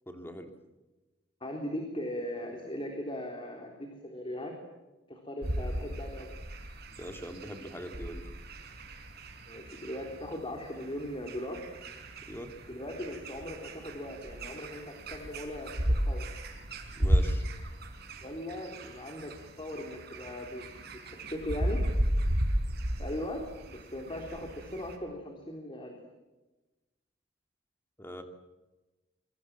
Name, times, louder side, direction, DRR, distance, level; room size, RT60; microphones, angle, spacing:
voice 1, 0.1-0.5 7.0-8.2 12.3-12.5 17.0-17.4 28.0-28.2, equal, 10° left, 6 dB, 2.8 m, -41 dB
voice 2, 1.4-4.6 5.1-6.3 9.5-11.7 12.7-16.3 18.2-21.8 23.0-26.0, left 1 dB, 30° left, 2 dB, 3.6 m, -39 dB
sound 1, 5.4-25.0, equal, 55° right, 4.9 m, -34 dB
27.0 x 24.0 x 7.5 m, 1.1 s
head